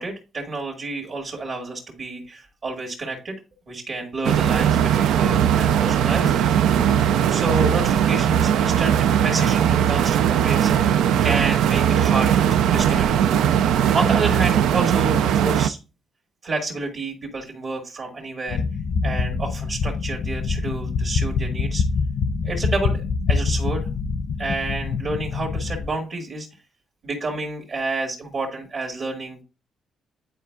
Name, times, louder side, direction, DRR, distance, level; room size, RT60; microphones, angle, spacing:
voice 1, 0.0-3.4 3.7-6.4 7.3-10.7 11.2-13.1 13.9-15.8 16.4-18.6 19.0-21.8 22.4-23.9 24.4-26.5 27.0-29.4, right 3 dB, 55° right, 0 dB, 1.9 m, -29 dB
sound 1, 4.2-15.7, right 9 dB, 85° right, 0.4 m, -19 dB
sound 2, 18.5-25.9, left 4 dB, 65° left, 0.6 m, -25 dB
9.8 x 4.5 x 2.3 m, 0.31 s
cardioid pair, 90°, 0 cm